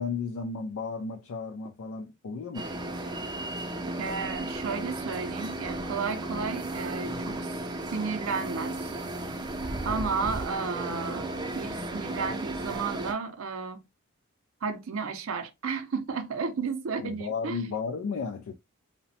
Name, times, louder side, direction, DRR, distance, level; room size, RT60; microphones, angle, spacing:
voice 1, 0.0-2.7 17.0-18.5, left 5 dB, 85° left, 0.4 m, -34 dB
sound 1, 2.5-13.1, right 1 dB, 20° right, 0.4 m, -34 dB
voice 2, 4.0-7.5 7.9-8.8 9.8-13.8 14.6-17.7, right 5 dB, 80° right, 0.5 m, -33 dB
2.9 x 2.0 x 2.7 m
head